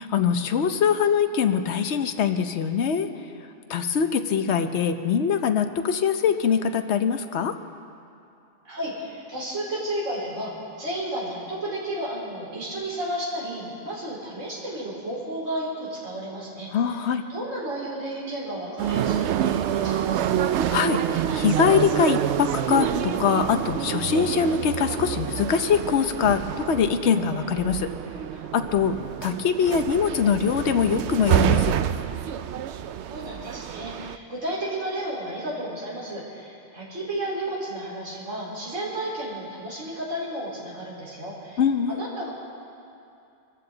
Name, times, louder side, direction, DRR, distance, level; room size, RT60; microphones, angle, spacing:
voice 1, 0.0-3.1 3.7-7.5 16.7-17.2 20.7-27.9 28.5-31.7 41.6-42.0, left 7 dB, 65° left, 8 dB, 1.0 m, -23 dB
voice 2, 8.6-10.5 10.8-17.0 17.3-20.5 33.1-41.6 41.9-42.3, right 1 dB, 85° right, -6 dB, 4.5 m, -32 dB
sound 1, 18.8-34.2, right 10 dB, 70° right, 0.8 m, -27 dB
24.5 x 14.5 x 3.9 m, 2.6 s
omnidirectional pair, 1.3 m